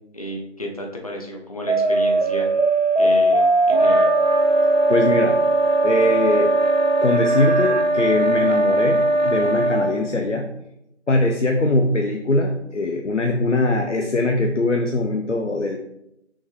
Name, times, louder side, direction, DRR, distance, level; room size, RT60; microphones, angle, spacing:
voice 1, 0.1-2.5 3.0-4.1, equal, 30° left, 0 dB, 0.7 m, -32 dB
sound 1, 1.7-7.8, right 2 dB, 80° right, 1.2 m, -20 dB
sound 2, 3.7-9.9, right 1 dB, 40° right, 0.8 m, -20 dB
voice 2, 4.9-5.4 5.8-6.5 7.0-10.5 11.1-15.8, left 2 dB, 85° left, 3 dB, 0.9 m, -21 dB
6.3 x 5.9 x 3.1 m, 0.82 s
figure-of-eight pair, 165°, 36 cm